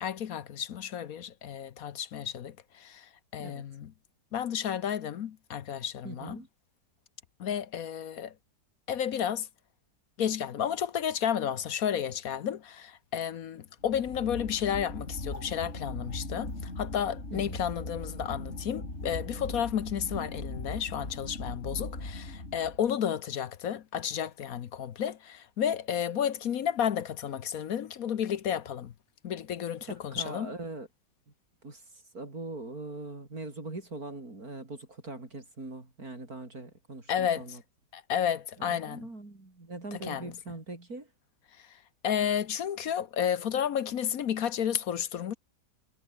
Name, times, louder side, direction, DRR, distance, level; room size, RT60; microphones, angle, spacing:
voice 1, 0.0-3.9 4.3-6.4 7.4-8.3 8.9-9.5 10.2-28.9 29.2-30.5 37.1-37.6 37.9-39.1 39.9-40.3 41.6-41.8 42.0-45.3, left 9 dB, 60° left, 1.3 m, -32 dB
voice 2, 6.0-6.5 17.3-17.6 30.1-30.9 31.6-37.6 38.6-41.1, right 2 dB, 55° right, 5.4 m, -41 dB
sound 1, 13.8-22.9, left 2 dB, 40° left, 5.7 m, -39 dB
omnidirectional pair, 1.9 m